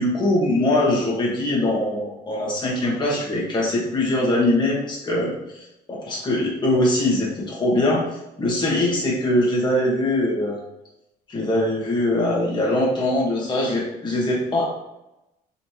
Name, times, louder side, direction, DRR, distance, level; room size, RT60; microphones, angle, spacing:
voice 1, 0.0-5.3 5.9-8.0 8.4-10.6 11.3-14.8, left 1 dB, 25° left, -4 dB, 1.3 m, -22 dB
4.2 x 3.1 x 2.8 m, 0.89 s
cardioid pair, 110°, 17 cm